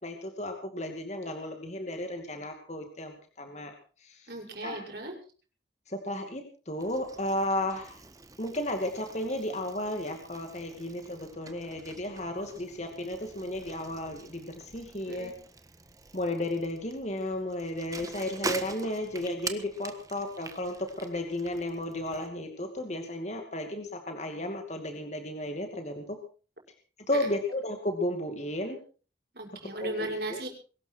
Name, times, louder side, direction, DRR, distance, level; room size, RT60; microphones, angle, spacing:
voice 1, 0.0-4.3 4.6-4.8 5.9-8.0 8.4-15.3 16.1-26.2 27.1-28.8 29.8-30.4, left 1 dB, 40° left, 5 dB, 2.5 m, -34 dB
voice 2, 4.3-5.1 15.1-15.3 27.1-27.3 29.3-30.5, right 1 dB, 55° right, 2 dB, 6.3 m, -36 dB
Bicycle, 6.8-22.3, right 3 dB, 20° right, 1.4 m, -44 dB
22.5 x 13.0 x 4.7 m, 0.39 s
head